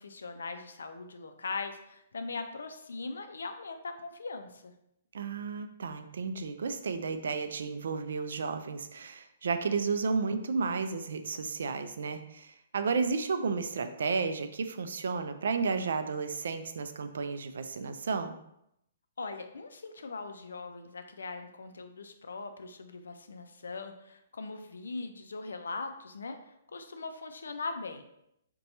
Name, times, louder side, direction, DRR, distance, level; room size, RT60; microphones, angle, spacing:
voice 1, 0.0-4.7 19.2-28.0, left 3 dB, 80° left, 7 dB, 0.4 m, -40 dB
voice 2, 5.1-18.4, right 4 dB, 70° right, 9 dB, 0.3 m, -32 dB
2.8 x 2.2 x 4.1 m, 0.79 s
hypercardioid pair, 130°, 0 cm